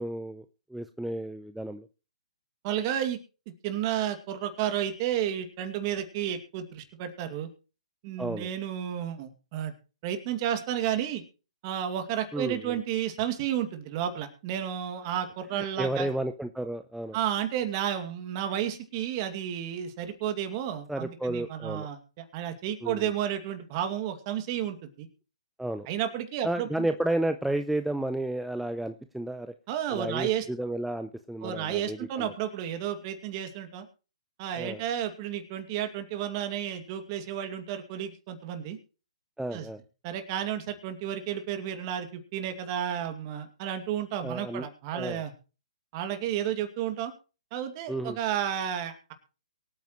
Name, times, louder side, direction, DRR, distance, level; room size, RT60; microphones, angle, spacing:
voice 1, 0.0-1.9 8.2-8.5 12.3-12.8 15.5-17.2 20.9-21.9 22.8-23.1 25.6-25.9 26.4-29.5 29.9-32.3 34.6-34.8 39.4-39.8 44.2-44.7 44.9-45.2 47.9-48.2, right 1 dB, ahead, 8 dB, 0.6 m, -32 dB
voice 2, 2.6-3.2 3.5-7.5 8.0-9.7 10.0-11.2 11.6-16.1 17.1-25.1 25.9-26.9 29.7-30.5 31.4-33.9 34.4-38.8 39.5-39.7 40.0-45.3 45.9-47.1 47.5-49.1, right 10 dB, 35° right, 7 dB, 2.3 m, -32 dB
23.5 x 9.0 x 3.1 m, 0.34 s
hypercardioid pair, 135°, 4 cm